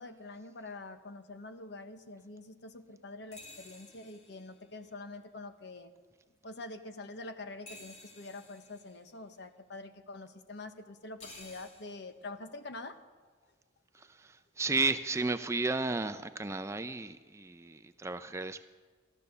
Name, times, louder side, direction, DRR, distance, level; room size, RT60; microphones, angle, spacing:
voice 1, 0.0-5.9 6.4-13.0, left 2 dB, 60° left, 8 dB, 1.0 m, -46 dB
sound 1, 3.3-5.1 7.7-9.1 11.2-12.1, left 2 dB, 35° left, 2.8 m, -53 dB
voice 2, 14.0-18.6, right 3 dB, 15° right, 10 dB, 0.4 m, -33 dB
13.5 x 12.0 x 6.7 m, 1.4 s
head